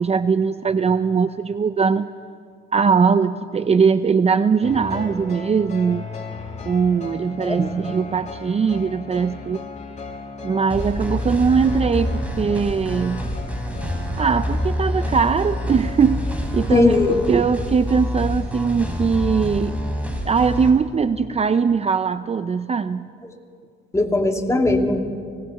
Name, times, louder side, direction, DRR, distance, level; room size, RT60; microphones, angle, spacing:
voice 1, 0.0-2.1 2.7-6.1 6.7-9.6 10.4-13.2 14.2-16.3 16.5-19.7 20.3-23.1, right 5 dB, 30° right, 12 dB, 0.6 m, -20 dB
sound 1, 4.6-17.4, left 4 dB, 35° left, 2.4 m, -37 dB
sound 2, 10.7-20.7, equal, 5° right, 4.3 m, -27 dB
voice 2, 16.7-17.2 23.9-25.0, left 2 dB, 15° left, 3 dB, 2.3 m, -18 dB
25.0 x 19.5 x 5.8 m, 2.1 s
cardioid pair, 90°, 20 cm